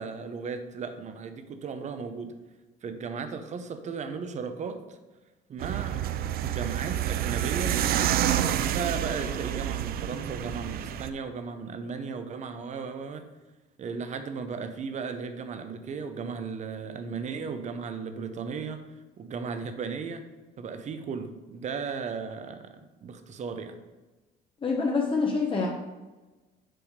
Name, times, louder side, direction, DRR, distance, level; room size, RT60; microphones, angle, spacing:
voice 1, 0.0-2.3 2.8-5.0 5.5-6.0 6.4-8.2 8.7-13.2 13.8-18.8 19.2-20.2 20.6-23.8, right 5 dB, 45° right, 9 dB, 0.8 m, -36 dB
sound 1, 5.6-11.1, right 11 dB, 65° right, 0.5 m, -28 dB
voice 2, 24.6-25.7, left 4 dB, 30° left, -1 dB, 1.0 m, -26 dB
7.7 x 3.5 x 6.5 m, 1.2 s
cardioid pair, 110°, 17 cm